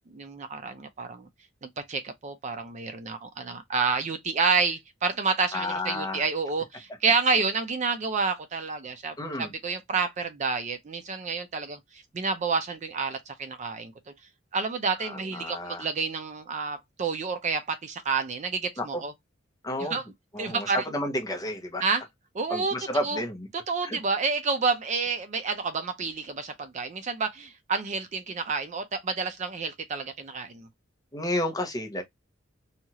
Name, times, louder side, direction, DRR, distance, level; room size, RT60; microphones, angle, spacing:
voice 1, 0.1-1.3 1.6-13.9 14.5-19.1 19.8-20.0 20.4-20.8 21.8-22.0 22.3-22.7 23.0-23.2 23.7-30.7, right 4 dB, 35° right, 0.4 m, -29 dB
voice 2, 5.5-6.3 9.2-9.5 15.0-15.9 18.8-19.0 19.6-20.0 20.3-21.8 22.5-23.5 23.8-24.0 31.1-32.0, left 1 dB, 20° left, 0.6 m, -31 dB
2.8 x 2.3 x 2.8 m
head